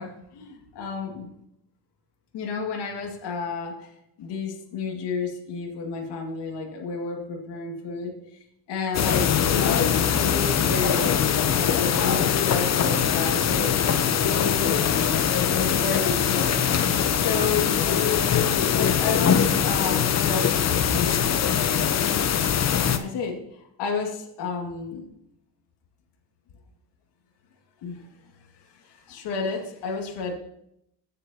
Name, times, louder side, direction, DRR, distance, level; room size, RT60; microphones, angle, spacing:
voice 1, 0.0-1.3 2.3-3.9 4.2-8.1 8.7-11.1 11.5-14.0 14.3-14.8 15.5-16.5 16.9-17.0 17.2-17.8 18.7-21.6 22.7-25.1 27.8-28.0 28.7-30.3, left 5 dB, 60° left, 1 dB, 2.2 m, -31 dB
sound 1, 8.9-23.0, left 8 dB, 35° left, 0.8 m, -22 dB
17.0 x 6.7 x 2.9 m, 0.78 s
supercardioid pair, 80°, 45 cm